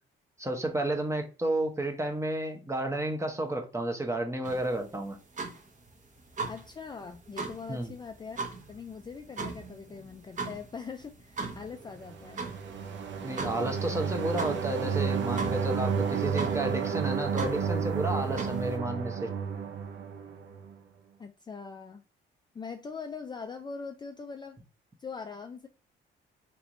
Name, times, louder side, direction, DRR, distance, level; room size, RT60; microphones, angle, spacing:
voice 1, 0.4-5.2 7.7-7.9 13.2-19.3, right 1 dB, 15° right, 0.8 m, -32 dB
sound 1, 4.4-18.8, right 4 dB, 40° right, 1.1 m, -40 dB
voice 2, 6.5-12.5 21.2-22.0 22.5-24.6 25.0-25.7, left 5 dB, 20° left, 0.3 m, -42 dB
sound 2, 12.0-20.7, right 6 dB, 65° right, 0.6 m, -31 dB
3.3 x 2.9 x 2.5 m
cardioid pair, 90°, 20 cm